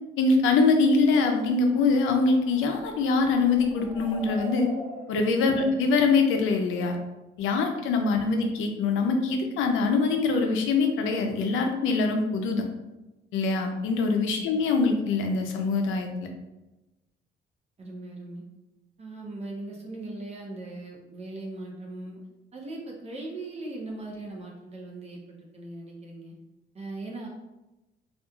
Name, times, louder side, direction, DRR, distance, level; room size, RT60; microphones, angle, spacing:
voice 1, 0.2-4.7 5.1-7.0 7.4-12.6 13.3-16.3, left 4 dB, 85° left, 4 dB, 0.5 m, -23 dB
sound 1, 1.4-7.1, right 1 dB, 10° left, 0.6 m, -44 dB
voice 2, 17.8-18.4 19.0-22.2 22.5-26.3 26.7-27.3, right 2 dB, 30° right, -2 dB, 0.6 m, -39 dB
2.8 x 2.4 x 2.2 m, 1.0 s
cardioid pair, 90°, 20 cm